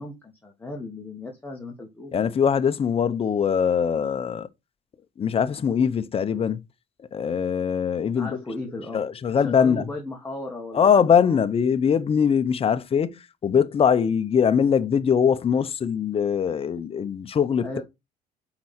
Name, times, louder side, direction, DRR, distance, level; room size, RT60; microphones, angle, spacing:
voice 1, 0.0-2.2 8.1-9.0 9.3-11.5 17.6-17.8, left 2 dB, 10° left, 1.7 m, -36 dB
voice 2, 2.1-4.5 5.2-6.6 7.1-8.3 8.9-9.9 10.7-17.7, left 7 dB, 35° left, 0.8 m, -22 dB
7.4 x 4.9 x 4.4 m
cardioid pair, 110°, 17 cm